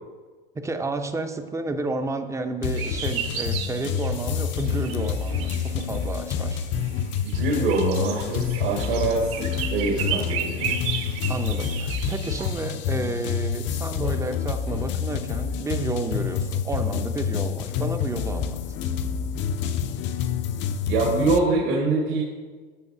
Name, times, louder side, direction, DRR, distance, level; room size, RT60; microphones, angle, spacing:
voice 1, 0.5-6.6 11.3-18.6, right 2 dB, 10° right, 8 dB, 0.6 m, -31 dB
sound 1, 2.6-21.4, left 7 dB, 40° left, 0.6 m, -28 dB
sound 2, 2.8-12.6, right 9 dB, 50° right, 1.1 m, -34 dB
voice 2, 7.2-10.8 20.9-22.2, right 3 dB, 65° right, -2 dB, 1.9 m, -24 dB
15.0 x 5.2 x 2.7 m, 1.4 s
hypercardioid pair, 100°, 30 cm